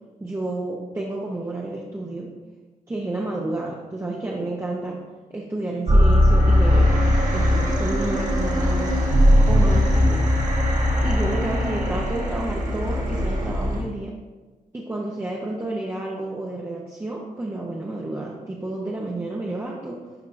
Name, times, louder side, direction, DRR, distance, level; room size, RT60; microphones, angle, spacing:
voice 1, 0.2-2.3 2.9-5.0 5.3-6.9 7.3-9.0 9.5-10.3 11.0-14.1 14.7-20.0, right 2 dB, 15° right, -3 dB, 0.7 m, -30 dB
sound 1, 5.9-13.8, equal, 55° right, 1.6 m, -19 dB
12.0 x 4.4 x 2.6 m, 1.2 s
wide cardioid pair, 145°, 15 cm